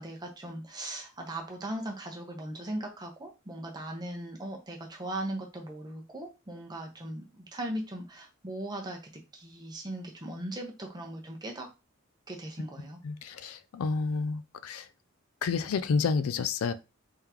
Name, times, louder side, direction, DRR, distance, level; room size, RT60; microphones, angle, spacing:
voice 1, 0.0-11.7 12.3-13.0, right 1 dB, 20° right, 0.8 m, -38 dB
voice 2, 13.0-14.9 15.4-16.7, left 5 dB, 75° left, 0.4 m, -30 dB
3.6 x 3.5 x 2.9 m
head